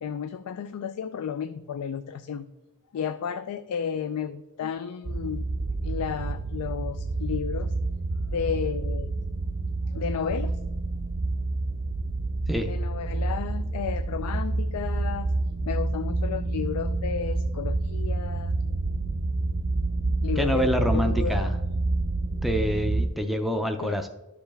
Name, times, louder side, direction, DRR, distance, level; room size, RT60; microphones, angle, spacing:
voice 1, 0.0-2.4 2.9-5.4 5.8-7.7 8.3-9.2 9.9-10.6 12.7-15.3 15.7-18.5 20.2-21.5 23.8-24.0, left 7 dB, 80° left, 11 dB, 0.4 m, -32 dB
sound 1, 5.1-23.1, right 2 dB, 85° right, 0.8 m, -28 dB
voice 2, 20.4-21.5 22.4-24.1, equal, ahead, 6 dB, 0.4 m, -26 dB
12.0 x 5.1 x 3.4 m, 1.1 s
head